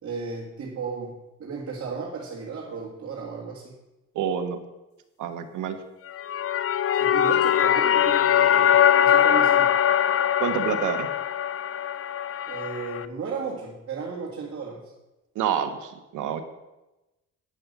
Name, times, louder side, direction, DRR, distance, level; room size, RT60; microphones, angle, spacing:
voice 1, 0.0-3.7 6.9-9.8 12.5-14.9, right 4 dB, 50° right, -3 dB, 2.0 m, -34 dB
voice 2, 4.1-4.6 5.2-5.8 10.4-11.1 15.3-16.4, right 8 dB, 85° right, 7 dB, 1.2 m, -28 dB
sound 1, 6.1-13.0, left 10 dB, 50° left, 0.5 m, -21 dB
9.8 x 5.9 x 6.7 m, 1.0 s
cardioid pair, 90°, 30 cm